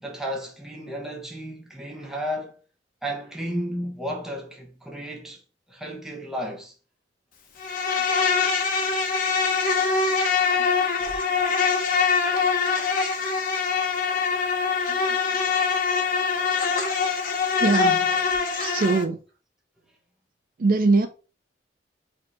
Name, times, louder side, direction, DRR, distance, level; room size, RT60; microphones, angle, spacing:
voice 1, 0.0-2.6 3.0-5.4 5.7-6.7, equal, 5° right, 1.0 m, -33 dB
Insect, 7.6-19.0, left 5 dB, 50° left, 0.9 m, -23 dB
voice 2, 17.6-18.1 18.6-19.2 20.6-21.1, right 3 dB, 50° right, 0.5 m, -21 dB
5.0 x 2.8 x 3.3 m
head